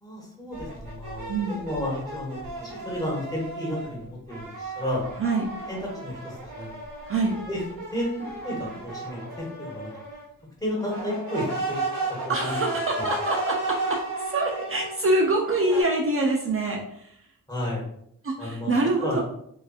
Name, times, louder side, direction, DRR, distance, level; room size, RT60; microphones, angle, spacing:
voice 1, 0.0-1.3 1.6-5.0 5.7-6.7 7.5-7.6 7.9-8.1 8.4-9.9 10.6-11.8 12.2-12.6 13.0-13.1 17.5-17.8 18.4-18.7 19.0-19.2, left 1 dB, 10° left, -4 dB, 1.3 m, -32 dB
sound 1, 0.5-3.9 4.3-10.3 10.8-15.0 15.4-15.8, right 2 dB, 90° right, 0.9 m, -34 dB
voice 2, 1.3-1.7 5.2-5.4 7.1-7.4 12.3-13.6 14.3-17.2 18.2-19.2, right 2 dB, 45° right, -1 dB, 0.5 m, -25 dB
3.9 x 2.5 x 2.4 m, 0.72 s
wide cardioid pair, 95°, 32 cm